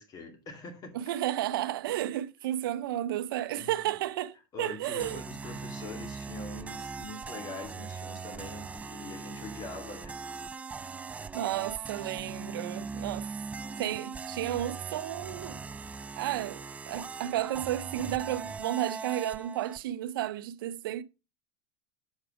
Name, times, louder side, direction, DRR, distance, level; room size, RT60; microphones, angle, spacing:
voice 1, 0.0-0.9 3.6-3.7 4.5-10.2, left 3 dB, 35° left, 2.2 m, -43 dB
voice 2, 0.9-5.2 11.3-13.3 13.8-15.6 16.2-21.0, right 13 dB, 85° right, 0.6 m, -32 dB
sound 1, 5.0-19.8, right 4 dB, 10° right, 0.3 m, -40 dB
7.3 x 4.9 x 4.8 m
supercardioid pair, 125°, 11 cm